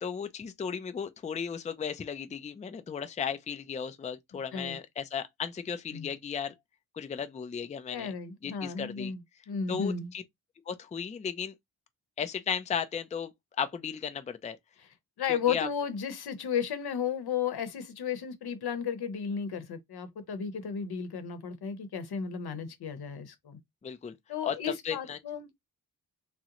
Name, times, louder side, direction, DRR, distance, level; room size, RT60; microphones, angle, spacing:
voice 1, 0.0-6.5 6.9-8.1 8.4-9.1 9.7-10.2 10.7-11.5 12.2-14.6 15.3-15.7 23.8-24.2 24.4-24.6 24.8-25.2, left 7 dB, 20° left, 0.3 m, -35 dB
voice 2, 7.9-9.2 9.5-10.1 15.2-23.6 24.3-25.5, left 7 dB, 85° left, 0.8 m, -34 dB
3.7 x 2.0 x 2.8 m
wide cardioid pair, 105°, 38 cm